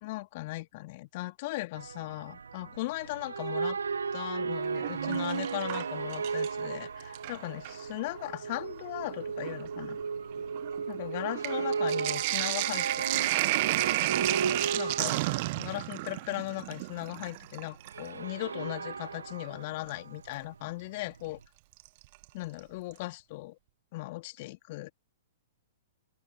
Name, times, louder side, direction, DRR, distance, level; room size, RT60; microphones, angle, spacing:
voice 1, 0.0-3.8 4.1-10.0 10.9-13.3 14.7-15.2 15.5-21.4 22.3-23.6 23.9-24.9, left 20 dB, 45° left, 2.3 m, -38 dB
sound 1, 1.7-20.7 21.0-21.4, right 5 dB, 70° right, 1.3 m, -35 dB
Sink (filling or washing), 4.6-6.7 7.0-7.8 8.6-8.7 9.0-18.1 19.9-20.0 21.8-22.2 22.6-22.7 22.9-23.0, right 22 dB, 40° right, 1.1 m, -32 dB
open air
figure-of-eight pair, 110°, 0 cm